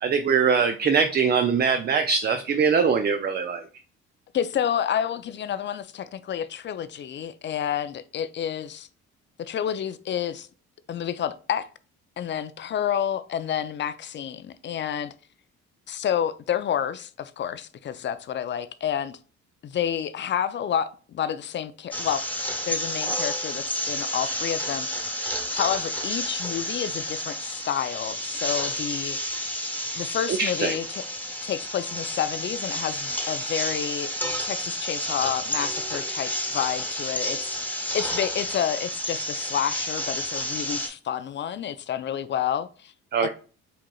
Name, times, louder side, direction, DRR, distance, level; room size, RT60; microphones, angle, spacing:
voice 1, 0.0-3.6 30.4-30.7 43.1-43.3, right 6 dB, 30° right, 0.4 m, -22 dB
voice 2, 4.3-8.9 9.4-10.5 10.9-11.7 12.2-15.1 15.9-19.2 19.6-22.3 22.7-24.9 25.5-29.2 29.9-31.0 31.4-34.1 34.4-42.9 43.2-43.3, left 9 dB, 35° left, 0.4 m, -29 dB
sound 1, 21.9-40.9, equal, 5° left, 1.2 m, -30 dB
5.0 x 2.8 x 2.3 m
hypercardioid pair, 55°, 32 cm